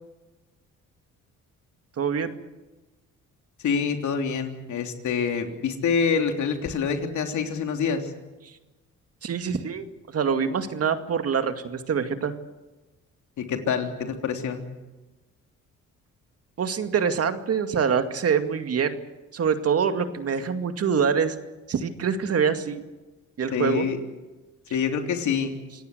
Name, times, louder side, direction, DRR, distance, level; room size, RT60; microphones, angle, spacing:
voice 1, 2.0-2.3 8.4-8.5 9.2-9.9 10.1-12.3 16.6-19.0 19.3-21.4 21.7-22.8 23.4-23.9, right 6 dB, 50° right, 8 dB, 2.2 m, -25 dB
voice 2, 3.6-8.1 13.4-14.6 23.5-24.0 24.7-25.5, left 6 dB, 70° left, 5 dB, 3.4 m, -26 dB
26.5 x 17.5 x 7.9 m, 1.1 s
cardioid pair, 90°, 30 cm